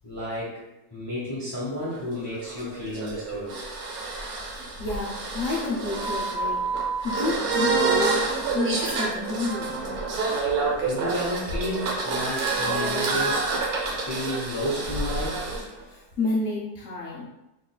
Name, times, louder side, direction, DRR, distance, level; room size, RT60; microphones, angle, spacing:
voice 1, 0.0-0.6 0.9-3.5 10.8-13.5 13.9-15.5, equal, 20° left, -8 dB, 0.7 m, -31 dB
sound 1, 1.9-15.6, right 3 dB, 70° right, 1.2 m, -28 dB
voice 2, 4.8-6.6 7.0-8.3 8.5-9.8 13.9-14.0 15.9-17.3, left 2 dB, 65° left, -4 dB, 0.8 m, -29 dB
3.8 x 3.1 x 2.2 m, 0.95 s
omnidirectional pair, 1.7 m